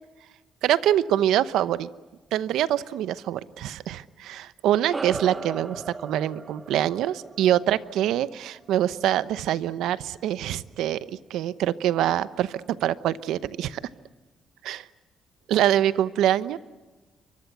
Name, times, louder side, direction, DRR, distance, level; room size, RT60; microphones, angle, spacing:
voice 1, 0.6-1.9 2.3-11.0 11.3-13.8 14.6-14.8 15.5-16.6, right 11 dB, 85° right, 16 dB, 0.8 m, -25 dB
sound 1, 4.9-9.7, right 3 dB, 25° right, 0.8 m, -38 dB
28.5 x 24.0 x 8.1 m, 1.2 s
cardioid pair, 90°, 0 cm